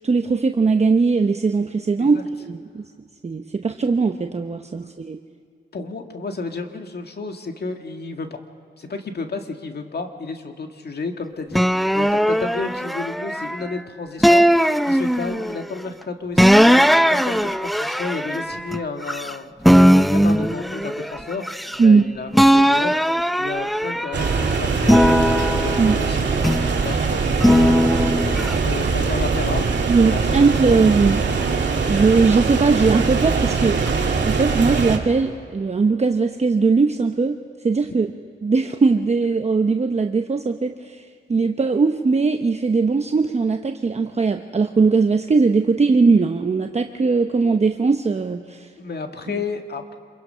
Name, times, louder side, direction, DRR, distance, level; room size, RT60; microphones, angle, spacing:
voice 1, 0.0-2.8 3.2-5.2 21.8-22.0 25.8-26.0 29.9-31.2 31.9-33.8 34.2-37.4 37.6-38.1 38.4-48.7, right 4 dB, 30° right, 5 dB, 0.9 m, -19 dB
voice 2, 5.7-8.4 8.8-19.5 19.9-23.0 23.4-26.3 26.8-27.9 28.6-29.7 30.1-30.8 48.8-49.9, left 4 dB, 50° left, 5 dB, 1.9 m, -32 dB
sound 1, 11.5-13.7 14.2-15.6 16.4-19.3 19.6-22.0 22.3-24.4 24.8-26.8 27.4-28.5, equal, ahead, 0.5 m, -18 dB
sound 2, 24.1-35.0, right 4 dB, 60° right, 2.5 m, -22 dB
26.5 x 22.0 x 5.7 m, 2.1 s
cardioid pair, 80°, 21 cm